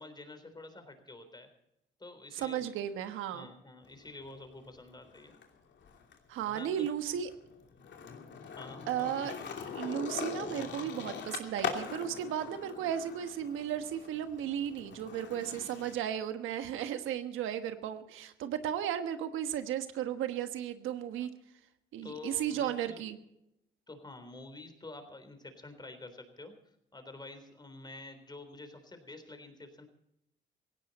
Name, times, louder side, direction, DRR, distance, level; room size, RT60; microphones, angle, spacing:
voice 1, 0.0-1.5 2.0-2.8 3.3-5.3 6.4-6.9 8.6-9.2 22.0-23.0 23.9-26.5 26.9-29.9, left 2 dB, 20° left, 8 dB, 3.7 m, -48 dB
voice 2, 2.3-3.5 6.3-7.3 8.9-9.3 9.7-21.3 21.9-23.2, right 10 dB, 90° right, 9 dB, 1.3 m, -35 dB
Skateboard, 3.9-5.4 5.8-16.0, left 6 dB, 65° left, 2.9 m, -42 dB
17.5 x 16.5 x 4.2 m, 0.83 s
cardioid pair, 90°, 20 cm